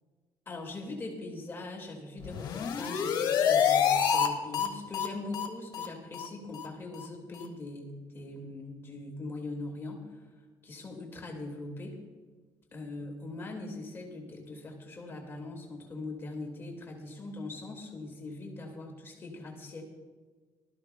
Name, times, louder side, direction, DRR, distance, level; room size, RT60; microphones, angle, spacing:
voice 1, 0.5-10.3 10.6-12.0 12.7-19.8, left 2 dB, 30° left, 0 dB, 2.1 m, -41 dB
sound 1, 2.2-4.3 4.5-4.7 4.9-5.1 5.3-5.5 5.7-5.9 6.1-6.3 6.5-6.7 6.9-7.1 7.4-7.5, left 8 dB, 60° left, 1.5 m, -27 dB
19.0 x 13.0 x 2.3 m, 1.4 s
cardioid pair, 120°, 8 cm